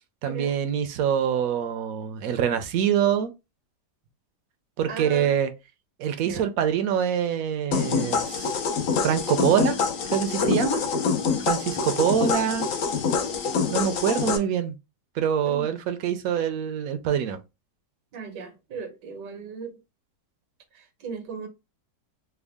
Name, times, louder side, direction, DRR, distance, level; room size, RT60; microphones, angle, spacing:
voice 1, 0.2-3.3 4.8-5.5 6.0-8.6 9.0-9.8 10.1-10.8 11.4-12.7 13.7-14.7 15.2-17.4, right 9 dB, 70° right, 0.9 m, -25 dB
voice 2, 4.9-5.3 6.2-6.5 15.5-15.7 18.1-19.8 20.7-21.5, right 4 dB, 90° right, 1.5 m, -37 dB
sound 1, 7.7-14.4, left 5 dB, 65° left, 0.9 m, -25 dB
3.5 x 2.1 x 3.4 m
omnidirectional pair, 1.8 m